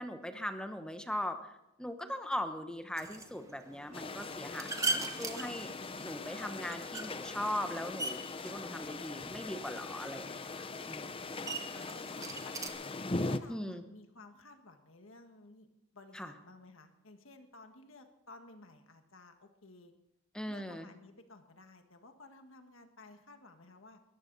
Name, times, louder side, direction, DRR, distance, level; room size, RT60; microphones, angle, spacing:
voice 1, 0.0-5.7 6.0-11.4 13.5-13.8 16.1-16.3 20.3-20.9, left 1 dB, 5° left, 7 dB, 1.0 m, -40 dB
sound 1, 3.0-12.7, right 3 dB, 15° right, 1.2 m, -42 dB
sound 2, 3.9-13.4, left 3 dB, 25° left, 0.6 m, -40 dB
voice 2, 11.7-12.9 13.2-15.7 15.9-19.9 20.5-24.0, left 2 dB, 70° left, 6 dB, 1.6 m, -55 dB
21.5 x 14.0 x 4.1 m, 0.88 s
head